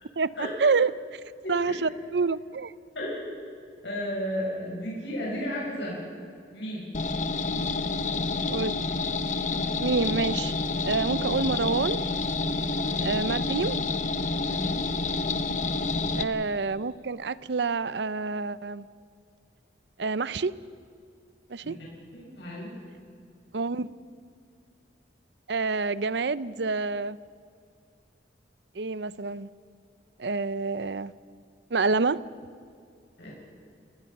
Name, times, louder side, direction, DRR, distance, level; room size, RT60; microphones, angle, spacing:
voice 1, 0.2-1.2 1.5-2.7 8.5-8.8 9.8-10.5 10.8-12.1 13.0-13.8 16.1-18.9 20.0-20.5 21.5-21.8 23.5-23.9 25.5-27.2 28.8-29.5 30.2-31.1 31.7-32.2, right 4 dB, 75° right, 17 dB, 0.6 m, -27 dB
voice 2, 1.4-1.8 3.0-3.2 3.8-6.0 6.5-6.9 12.8-13.2 14.4-14.7 21.6-21.7 22.1-22.7 33.2-33.3, equal, 80° left, -4 dB, 7.3 m, -34 dB
sound 1, 6.9-16.2, left 3 dB, 40° left, 0.9 m, -28 dB
29.5 x 18.5 x 6.0 m, 2.2 s
head